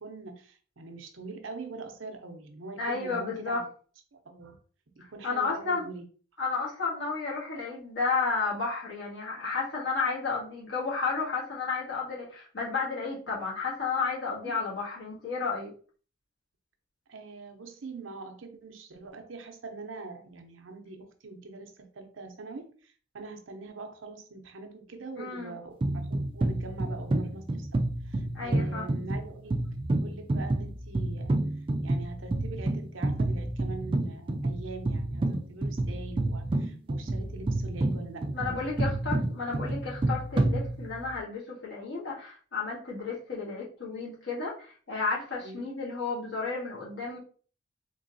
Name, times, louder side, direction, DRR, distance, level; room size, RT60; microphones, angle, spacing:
voice 1, 0.0-3.7 4.2-4.6 5.0-6.1 14.4-14.6 17.1-29.6 30.0-31.4 31.8-38.7 39.5-39.6 45.4-45.7, right 3 dB, 85° right, 5 dB, 0.7 m, -43 dB
voice 2, 2.8-3.6 5.2-5.8 6.4-15.7 25.2-25.5 28.3-28.9 38.3-47.2, left 4 dB, 70° left, -4 dB, 1.6 m, -32 dB
sound 1, 25.8-41.2, right 2 dB, 25° right, 0.3 m, -30 dB
3.8 x 2.9 x 2.7 m, 0.41 s
head